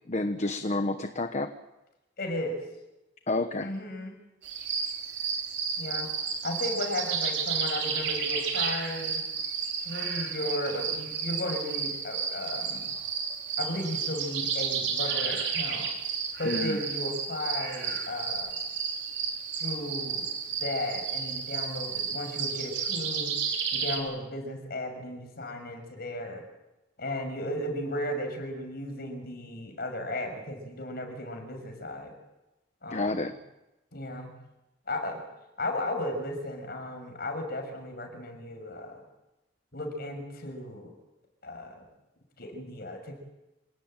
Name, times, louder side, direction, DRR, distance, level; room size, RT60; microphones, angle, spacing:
voice 1, 0.1-1.5 3.3-3.7 16.4-16.8 32.9-33.3, left 2 dB, 40° left, 8 dB, 1.1 m, -29 dB
voice 2, 2.2-2.6 3.6-4.2 5.8-6.1 6.4-9.2 9.8-12.9 13.6-15.9 16.4-18.6 19.6-20.3 20.6-23.3 23.7-26.4 27.0-32.1 32.8-33.2 33.9-34.3 34.9-35.2 35.6-39.0 39.7-40.9 41.4-41.9 42.4-43.2, left 1 dB, 55° left, 5 dB, 6.5 m, -35 dB
sound 1, 4.4-24.0, right 6 dB, 65° right, 4.6 m, -32 dB
27.0 x 17.5 x 9.1 m, 0.99 s
head